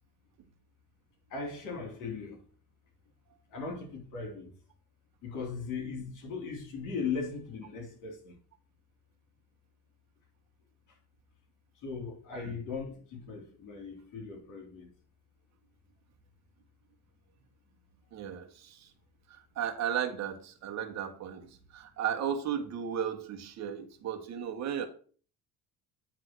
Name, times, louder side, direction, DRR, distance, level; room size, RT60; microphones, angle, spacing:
voice 1, 1.3-2.4 3.5-4.5 5.2-8.4 11.8-14.9, left 5 dB, 65° left, 3.5 m, -38 dB
voice 2, 18.1-18.9 19.3-24.9, right 9 dB, 55° right, 1.4 m, -35 dB
9.3 x 3.7 x 6.1 m
cardioid pair, 115°, 32 cm